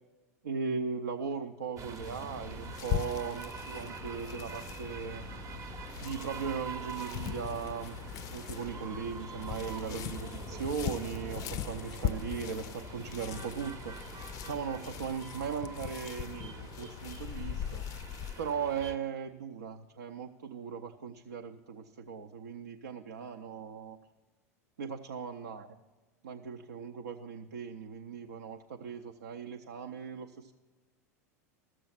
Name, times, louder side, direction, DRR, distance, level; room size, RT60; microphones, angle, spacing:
voice 1, 0.4-5.3 6.0-8.0 8.3-14.0 14.4-17.8 18.4-24.0 24.8-25.7 26.2-30.5, right 6 dB, 80° right, 4 dB, 0.5 m, -38 dB
sound 1, 1.8-19.0, right 5 dB, 35° right, 0.7 m, -45 dB
sound 2, 1.9-18.6, left 11 dB, 45° left, 0.4 m, -40 dB
13.5 x 6.9 x 5.7 m, 1.2 s
hypercardioid pair, 85°, 9 cm